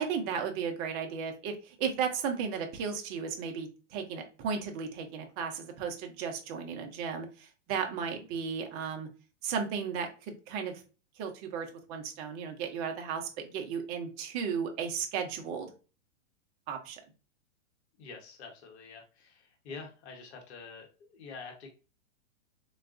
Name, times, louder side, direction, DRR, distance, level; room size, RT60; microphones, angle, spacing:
voice 1, 0.0-9.1 9.4-10.8 11.2-15.7 16.7-17.0, right 6 dB, 30° right, 4 dB, 0.6 m, -35 dB
voice 2, 18.0-21.7, left 4 dB, 60° left, 2 dB, 1.1 m, -47 dB
3.9 x 2.3 x 2.4 m, 0.34 s
hypercardioid pair, 140°, 38 cm